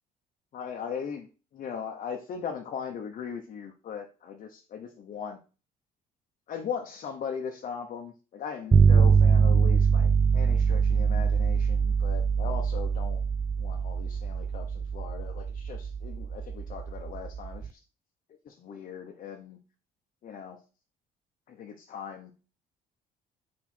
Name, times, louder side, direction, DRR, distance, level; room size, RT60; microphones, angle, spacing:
voice 1, 0.5-1.3 1.5-5.4 6.5-13.2 13.6-17.8 18.5-19.6 20.2-20.6 21.5-22.3, left 7 dB, 50° left, 1 dB, 0.9 m, -39 dB
sound 1, 8.7-17.7, right 6 dB, 20° right, 0.3 m, -24 dB
4.7 x 4.7 x 4.3 m, 0.33 s
cardioid pair, 110°, 17 cm